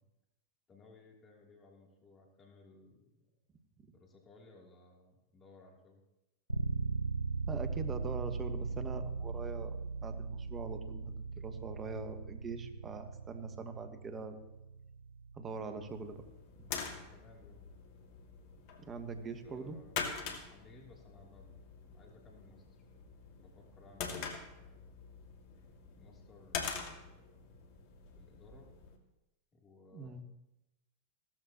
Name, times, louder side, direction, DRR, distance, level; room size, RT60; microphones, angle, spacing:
voice 1, 0.7-3.3 3.9-6.0 15.6-16.0 16.8-17.6 19.4-20.0 20.5-22.6 23.3-24.8 25.9-27.4 28.2-28.7 29.5-30.2, left 3 dB, 25° left, 0 dB, 3.1 m, -60 dB
sound 1, 6.5-16.2, right 4 dB, 90° right, 0.5 m, -39 dB
voice 2, 7.5-14.4 15.3-16.2 16.6-16.7 18.8-19.8 29.9-30.2, right 4 dB, 20° right, 8 dB, 1.5 m, -43 dB
sound 2, 15.9-29.0, left 6 dB, 45° left, 2.0 m, -45 dB
16.0 x 14.0 x 3.0 m, 0.94 s
figure-of-eight pair, 90°, 0 cm